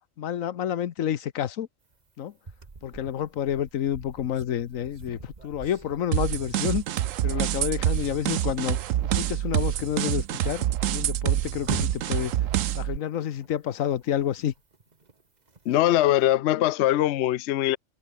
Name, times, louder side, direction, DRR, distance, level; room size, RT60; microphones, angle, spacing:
voice 1, 0.2-1.7 2.2-2.3 2.8-8.8 9.0-12.3 12.7-14.5, left 10 dB, 85° left, 1.3 m, -29 dB
sound 1, 1.9-9.0 9.3-9.4 9.8-10.3 10.7-10.8 11.0-16.2, right 4 dB, 35° right, 1.6 m, -44 dB
sound 2, 6.1-13.0, right 12 dB, 80° right, 1.1 m, -26 dB
voice 2, 15.7-17.8, left 13 dB, 65° left, 0.8 m, -22 dB
omnidirectional pair, 1.4 m